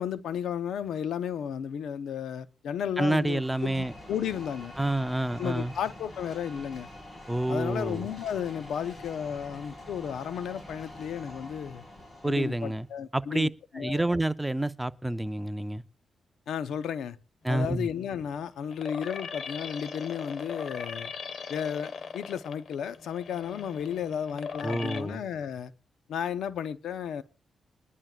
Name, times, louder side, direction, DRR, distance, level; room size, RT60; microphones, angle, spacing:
voice 1, 0.0-4.7 5.4-6.9 7.5-11.8 12.2-14.0 16.5-17.2 17.5-21.1 21.5-25.7 26.1-27.2, left 8 dB, 85° left, 0.7 m, -33 dB
sound 1, 3.0-12.9, left 1 dB, 35° left, 4.7 m, -46 dB
voice 2, 3.0-3.9 4.8-5.7 7.3-8.1 12.2-12.9 13.1-13.5 13.7-15.8 17.4-17.9 24.6-25.2, right 1 dB, 10° right, 0.5 m, -28 dB
sound 2, 17.5-25.0, left 5 dB, 65° left, 1.3 m, -40 dB
21.5 x 11.0 x 2.4 m
cardioid pair, 70°, 0 cm